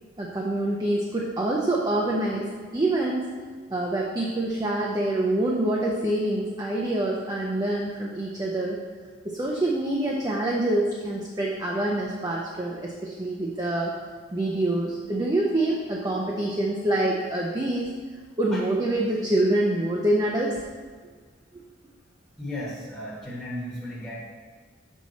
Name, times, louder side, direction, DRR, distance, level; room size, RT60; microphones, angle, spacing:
voice 1, 0.2-3.3 3.7-8.8 9.2-13.9 14.3-17.9 18.4-20.6, right 1 dB, 20° right, -2 dB, 0.6 m, -26 dB
voice 2, 22.4-24.3, left 1 dB, 5° left, -8 dB, 1.2 m, -35 dB
6.4 x 5.5 x 4.1 m, 1.5 s
head